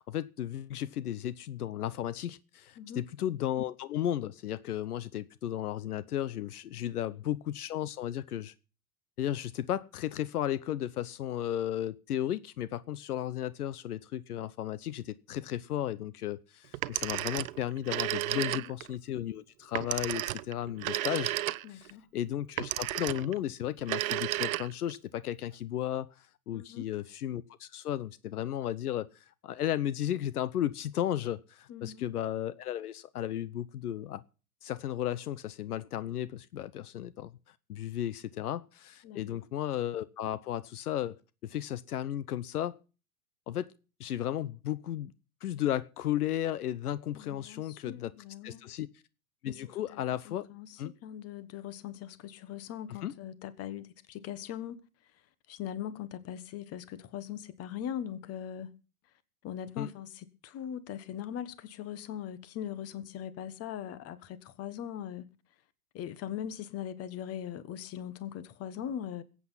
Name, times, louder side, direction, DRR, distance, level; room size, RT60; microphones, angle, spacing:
voice 1, 0.0-8.5 9.2-21.3 21.7-29.1 29.4-34.2 34.6-37.3 37.7-42.8 43.5-43.7 44.0-45.1 45.4-48.1 48.4-48.9 49.4-50.5 50.8-50.9 53.0-53.1 59.8-59.9, left 11 dB, 85° left, 0.8 m, -34 dB
Telephone, 16.7-18.9 19.7-21.9 22.6-23.4 23.8-25.0, right 16 dB, 65° right, 0.7 m, -33 dB
voice 2, 18.3-18.7 21.6-22.1 26.5-26.9 31.7-32.1 39.0-39.2 47.1-48.7 49.4-49.6 49.9-54.8 55.5-58.7 59.4-65.3 65.9-69.2, left 10 dB, 35° left, 1.3 m, -41 dB
21.0 x 8.6 x 5.6 m
hypercardioid pair, 115°, 44 cm